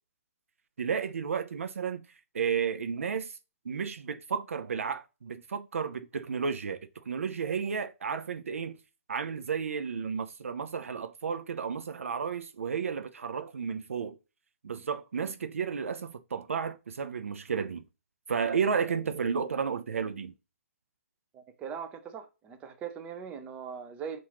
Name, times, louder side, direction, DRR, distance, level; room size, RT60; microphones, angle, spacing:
voice 1, 0.8-2.1 2.3-3.4 3.6-8.8 9.1-14.2 14.6-17.8 18.3-20.3, right 6 dB, 65° right, 0.5 m, -32 dB
voice 2, 21.3-24.2, right 7 dB, 15° right, 0.5 m, -40 dB
5.5 x 2.5 x 2.9 m
figure-of-eight pair, 135°, 8 cm